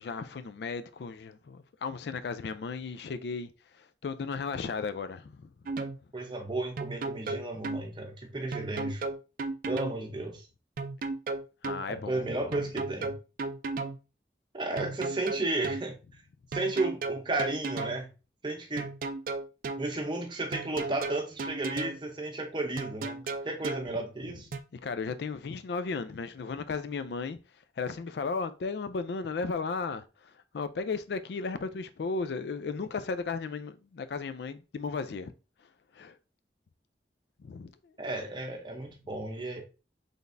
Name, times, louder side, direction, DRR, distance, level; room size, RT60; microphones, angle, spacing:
voice 1, 0.0-3.5 4.0-5.5 11.6-12.2 24.8-27.4 27.8-30.0 30.5-35.3 36.0-36.1 37.4-37.7, left 4 dB, 70° left, 0.4 m, -35 dB
sound 1, 5.7-6.0 6.8-7.8 8.5-10.0 10.8-11.8 12.5-14.0 14.8-15.8 16.5-18.0 18.8-19.8 20.5-22.0 22.8-23.9 24.5-24.6, right 3 dB, 50° right, 0.3 m, -34 dB
voice 2, 6.1-9.0 9.7-10.5 11.9-13.1 14.5-16.2 16.5-18.1 18.4-18.9 19.8-24.5 38.0-39.6, right 2 dB, 25° right, 0.7 m, -33 dB
3.9 x 3.4 x 2.6 m
head